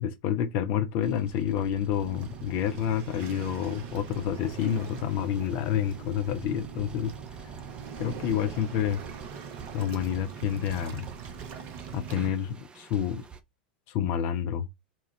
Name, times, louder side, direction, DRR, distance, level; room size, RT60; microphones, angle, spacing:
voice 1, 0.0-7.1 8.0-9.0 9.7-11.1 11.9-13.2 13.9-14.7, left 9 dB, 45° left, 0.6 m, -29 dB
sound 1, 1.0-13.4, right 5 dB, 20° right, 0.6 m, -48 dB
Waves surf, 2.0-12.3, right 7 dB, 45° right, 0.9 m, -42 dB
4.3 x 2.3 x 3.1 m
figure-of-eight pair, 90°, 5 cm